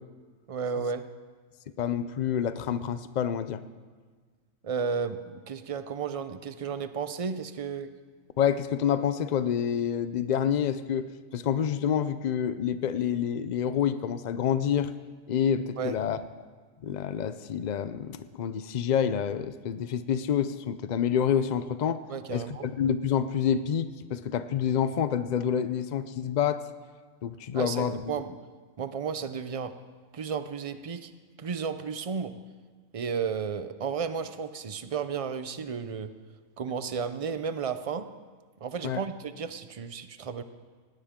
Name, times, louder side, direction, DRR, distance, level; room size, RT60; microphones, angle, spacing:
voice 1, 0.5-1.0 4.6-7.9 15.8-16.0 22.1-22.7 27.5-28.3 28.8-29.7 30.1-31.1 31.4-32.4 32.9-36.1 36.6-38.1 38.6-40.4, right 6 dB, 45° right, 11 dB, 0.4 m, -33 dB
voice 2, 1.8-3.6 8.4-11.1 11.3-14.9 15.3-16.2 16.8-22.0 22.3-26.6 27.2-28.1 38.8-39.0, left 8 dB, 80° left, 12 dB, 0.4 m, -28 dB
19.0 x 17.0 x 3.7 m, 1.5 s
omnidirectional pair, 1.4 m